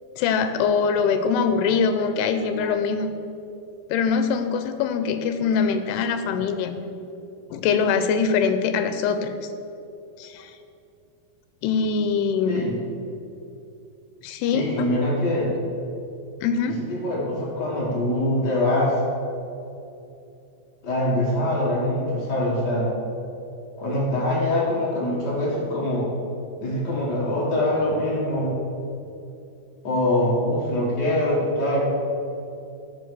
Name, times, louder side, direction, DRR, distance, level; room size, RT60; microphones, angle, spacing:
voice 1, 0.2-3.1 3.9-6.8 7.5-9.4 10.2-10.6 11.6-12.7 14.2-14.9 16.4-16.8, left 6 dB, 90° left, 9 dB, 2.7 m, -23 dB
voice 2, 14.5-15.5 16.9-19.0 20.8-22.9 23.8-26.1 26.6-28.5 29.8-31.9, left 1 dB, 55° left, -6 dB, 1.1 m, -23 dB
13.5 x 5.2 x 6.8 m, 2.7 s
omnidirectional pair, 4.6 m